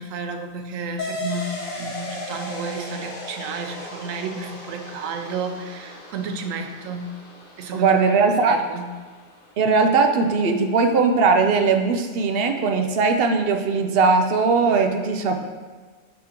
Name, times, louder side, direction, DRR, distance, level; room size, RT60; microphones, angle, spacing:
voice 1, 0.0-7.2 7.6-8.0 8.5-8.9, right 4 dB, 85° right, 6 dB, 1.0 m, -32 dB
sound 1, 1.0-10.0, left 2 dB, 45° left, 1.1 m, -37 dB
voice 2, 7.7-8.6 9.6-15.4, right 4 dB, 65° right, 5 dB, 0.6 m, -19 dB
9.3 x 3.7 x 2.9 m, 1.4 s
omnidirectional pair, 1.3 m